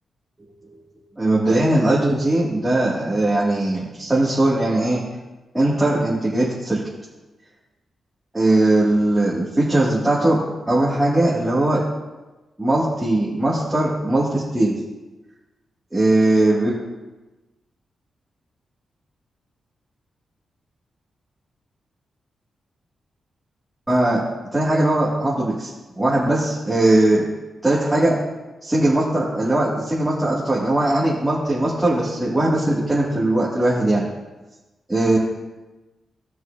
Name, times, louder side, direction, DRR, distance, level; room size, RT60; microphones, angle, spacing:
voice 1, 1.2-5.0 5.5-6.8 8.3-10.4 10.7-11.8 12.6-14.8 15.9-16.7 23.9-24.2 24.5-27.2 27.6-28.2 28.6-34.0 34.9-35.2, right 1 dB, 10° right, -8 dB, 2.1 m, -19 dB
18.0 x 6.2 x 2.6 m, 1.1 s
wide cardioid pair, 110°, 0 cm